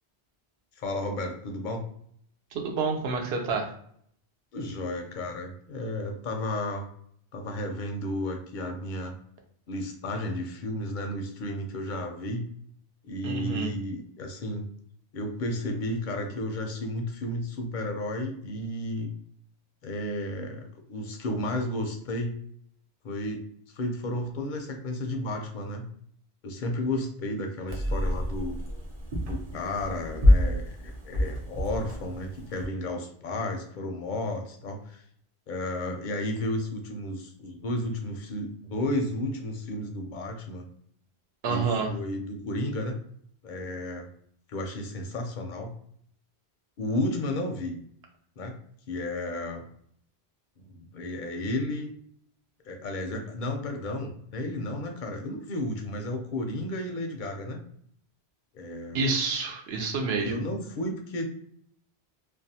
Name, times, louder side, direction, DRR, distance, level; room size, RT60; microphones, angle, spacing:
voice 1, 0.8-1.8 4.5-6.9 7.3-9.1 9.7-12.4 13.0-14.7 15.1-19.1 19.8-22.4 23.0-23.5 23.8-25.9 26.4-28.6 29.3-35.0 35.5-40.6 41.5-43.0 43.4-44.1 44.5-45.7 46.8-47.8 48.4-48.5 48.9-49.6 50.6-51.9 52.7-57.6 58.5-59.0 60.2-61.3, left 1 dB, 60° left, 3 dB, 0.6 m, -33 dB
voice 2, 2.5-3.7 13.2-13.7 41.4-41.9 58.9-60.4, right 4 dB, 75° right, 2 dB, 0.8 m, -28 dB
sound 1, 27.7-32.7, left 1 dB, 45° right, 0.6 m, -27 dB
2.4 x 2.2 x 2.7 m, 0.64 s
omnidirectional pair, 1.1 m